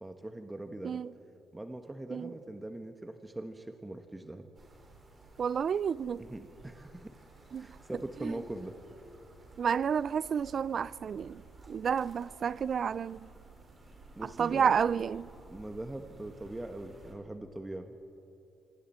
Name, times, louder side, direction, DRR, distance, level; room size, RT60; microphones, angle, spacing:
voice 1, 0.0-1.0 1.5-4.5 6.2-7.1 7.5-8.8 14.2-14.7 15.5-17.9, right 1 dB, 15° right, 1.2 m, -41 dB
sound 1, 4.5-17.1, right 3 dB, 35° right, 4.9 m, -55 dB
voice 2, 5.4-6.3 7.5-7.7 8.2-8.3 9.6-11.4 11.7-13.3 14.2-15.3, right 7 dB, 50° right, 0.4 m, -30 dB
25.5 x 25.0 x 4.4 m
cardioid pair, 90°, 0 cm